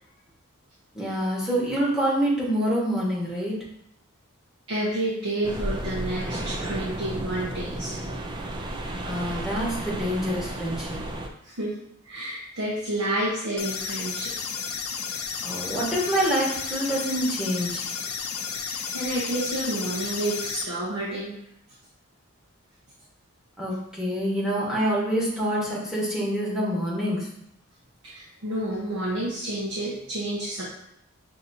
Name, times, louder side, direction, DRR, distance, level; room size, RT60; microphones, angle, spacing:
voice 1, 0.9-3.5 9.0-11.0 15.4-17.9 23.6-27.3, equal, 5° right, -7 dB, 1.2 m, -26 dB
voice 2, 4.7-8.0 11.4-11.7 12.0-14.3 18.6-21.3 28.0-30.7, right 1 dB, 80° right, -5 dB, 0.9 m, -30 dB
sound 1, 5.4-11.3, right 1 dB, 20° right, 0.3 m, -33 dB
sound 2, 13.6-20.6, left 6 dB, 85° left, 0.5 m, -32 dB
6.1 x 2.8 x 2.6 m, 0.75 s
head